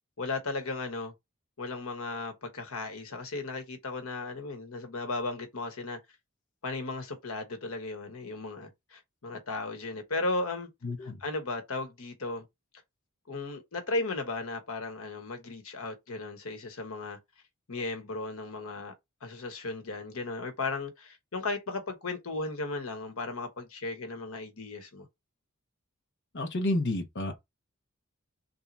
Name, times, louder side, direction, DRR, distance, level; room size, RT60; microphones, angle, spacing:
voice 1, 0.2-1.1 1.6-6.0 6.6-10.7 11.2-12.5 13.3-17.2 17.7-18.9 19.2-25.1, left 3 dB, 90° left, 1.2 m, -35 dB
voice 2, 10.8-11.2 26.3-27.4, left 1 dB, 60° left, 1.0 m, -30 dB
3.5 x 2.8 x 4.1 m
head